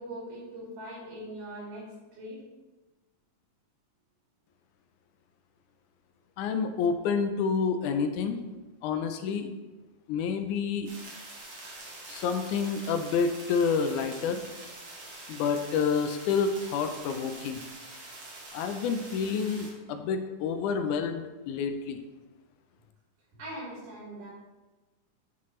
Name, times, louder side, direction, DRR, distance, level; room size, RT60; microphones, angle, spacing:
voice 1, 0.0-2.4 23.4-24.3, right 1 dB, 80° right, -6 dB, 4.1 m, -41 dB
voice 2, 6.4-8.4 8.8-9.5 10.1-10.9 12.1-14.4 15.3-17.7 18.5-22.0, left 6 dB, 80° left, 7 dB, 2.0 m, -29 dB
sound 1, 10.9-19.7, right 2 dB, 55° right, 2.5 m, -45 dB
9.3 x 5.7 x 3.1 m, 1.2 s
omnidirectional pair, 3.6 m